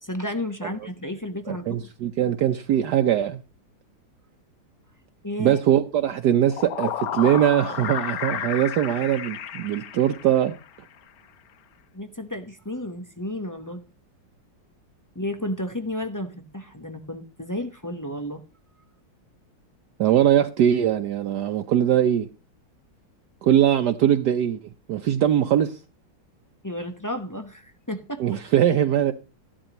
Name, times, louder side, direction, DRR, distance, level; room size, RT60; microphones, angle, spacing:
voice 1, 0.0-1.9 5.2-5.6 11.9-13.9 15.1-18.4 26.6-28.2, left 1 dB, 20° left, 0.5 m, -32 dB
voice 2, 1.5-3.4 5.4-10.5 20.0-22.3 23.4-24.6 24.9-25.8 28.2-29.1, right 10 dB, 70° right, 1.2 m, -21 dB
sound 1, 6.2-10.7, left 9 dB, 60° left, 1.1 m, -32 dB
14.0 x 11.5 x 3.0 m
omnidirectional pair, 2.0 m